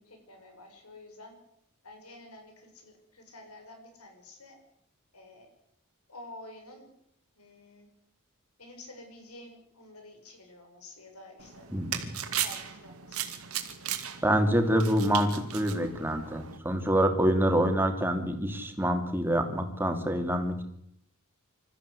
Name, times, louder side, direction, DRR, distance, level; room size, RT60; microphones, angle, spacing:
voice 1, 0.0-1.4 1.8-4.6 5.1-5.5 6.1-6.9 7.4-7.9 8.6-11.7 12.2-13.2, left 1 dB, 85° left, 4 dB, 6.7 m, -50 dB
sound 1, 11.4-16.6, right 10 dB, 75° right, 2.4 m, -37 dB
voice 2, 14.2-20.6, right 1 dB, 10° right, 6 dB, 2.7 m, -26 dB
26.0 x 14.0 x 8.4 m, 0.74 s
head